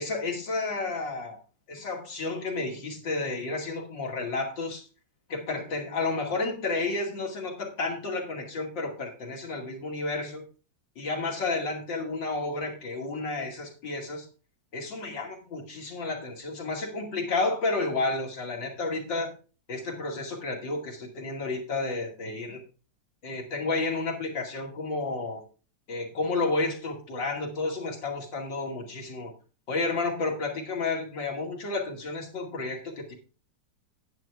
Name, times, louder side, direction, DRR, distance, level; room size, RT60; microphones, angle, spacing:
voice 1, 0.0-1.4 1.7-4.9 5.3-10.4 11.0-14.3 14.7-19.3 19.7-22.6 23.2-25.4 25.9-29.3 29.7-33.1, left 3 dB, 85° left, 0 dB, 3.1 m, -31 dB
10.5 x 9.7 x 3.5 m, 0.36 s
omnidirectional pair, 1.9 m